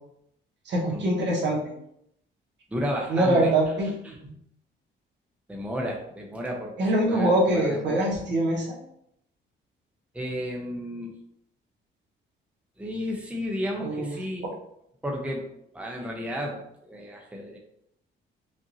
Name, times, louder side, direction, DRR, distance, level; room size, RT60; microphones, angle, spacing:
voice 1, 0.6-1.6 3.1-4.1 6.8-8.8 13.8-14.1 14.4-14.5, right 1 dB, 65° right, -3 dB, 1.4 m, -24 dB
voice 2, 2.7-3.5 4.0-4.2 5.5-6.7 7.0-8.0 10.1-11.2 12.8-14.5 15.0-17.6, equal, 5° right, -1 dB, 0.7 m, -33 dB
5.1 x 2.6 x 2.8 m, 0.76 s
cardioid pair, 90°, 20 cm